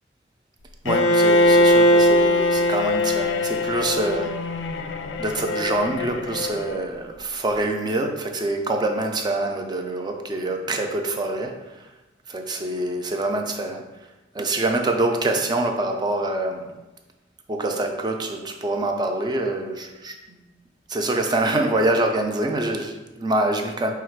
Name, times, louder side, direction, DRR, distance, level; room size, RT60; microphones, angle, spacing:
voice 1, 0.8-4.4 5.2-11.5 12.3-13.8 14.3-16.7 17.5-20.4 20.9-23.9, right 2 dB, 25° right, 4 dB, 0.4 m, -25 dB
Bowed string instrument, 0.9-6.8, left 1 dB, 75° left, 0.4 m, -20 dB
4.3 x 2.4 x 4.4 m, 1.1 s
head